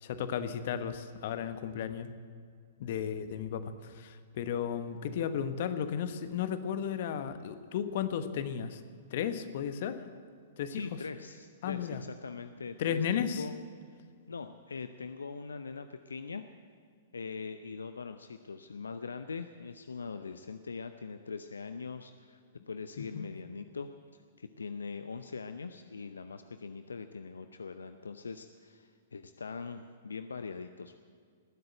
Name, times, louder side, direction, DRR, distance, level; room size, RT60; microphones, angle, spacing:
voice 1, 0.0-2.1 2.8-8.8 9.1-10.0 10.6-11.0 11.6-12.0 12.8-13.5 23.0-23.3, left 8 dB, 55° left, 11 dB, 1.1 m, -34 dB
voice 2, 10.7-13.5 14.3-16.4 17.1-22.4 22.7-31.0, left 5 dB, 80° left, 10 dB, 0.6 m, -42 dB
19.0 x 8.0 x 8.9 m, 2.1 s
figure-of-eight pair, 110°, 0 cm